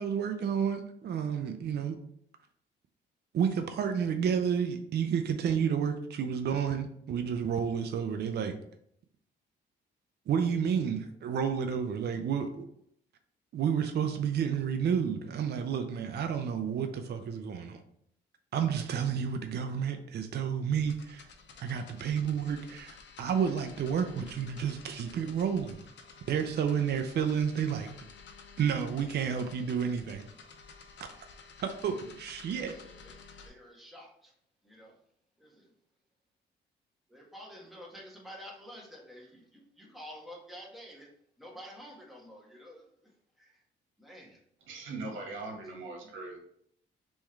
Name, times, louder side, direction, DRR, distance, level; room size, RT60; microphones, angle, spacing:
voice 1, 0.0-2.0 3.3-8.5 10.3-12.7 13.5-17.8 18.5-21.3 21.6-25.8 26.3-27.9 28.6-30.2 31.6-32.7, right 7 dB, 55° right, 6 dB, 0.5 m, -30 dB
sound 1, 20.8-33.5, left 5 dB, 65° left, 0.8 m, -52 dB
voice 2, 32.5-33.2 33.4-34.3 34.6-34.9 35.4-35.7 37.1-41.1 41.4-42.8 43.4-43.5 44.0-44.4, equal, ahead, -4 dB, 1.7 m, -49 dB
voice 3, 44.6-46.4, right 3 dB, 80° right, 1 dB, 1.4 m, -40 dB
3.5 x 3.1 x 4.5 m, 0.69 s
cardioid pair, 90°, 20 cm